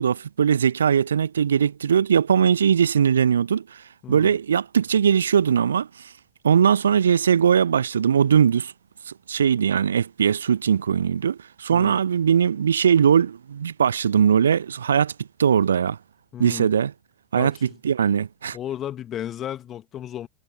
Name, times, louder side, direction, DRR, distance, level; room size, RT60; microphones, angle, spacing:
voice 1, 0.0-3.6 4.1-5.9 6.4-8.7 9.3-15.1 15.4-16.0 16.4-16.9 17.3-18.6, right 7 dB, 70° right, 1.1 m, -20 dB
voice 2, 4.0-4.4 11.7-12.0 16.3-16.7 17.4-17.6 18.5-20.3, left 11 dB, 30° left, 1.7 m, -34 dB
figure-of-eight pair, 90°, 0 cm